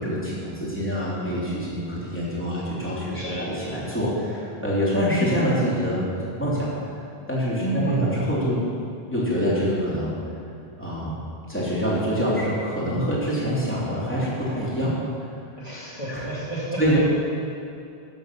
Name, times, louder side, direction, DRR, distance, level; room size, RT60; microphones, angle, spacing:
voice 1, 0.0-6.7 7.3-8.6 9.1-10.1 10.8-11.1 11.5-14.9 16.1-16.2 16.8-17.0, equal, 10° left, -8 dB, 3.2 m, -25 dB
voice 2, 3.1-3.5 7.6-8.1 15.6-16.8, right 3 dB, 30° left, -11 dB, 2.7 m, -30 dB
14.5 x 6.8 x 6.0 m, 2.7 s
omnidirectional pair, 1.0 m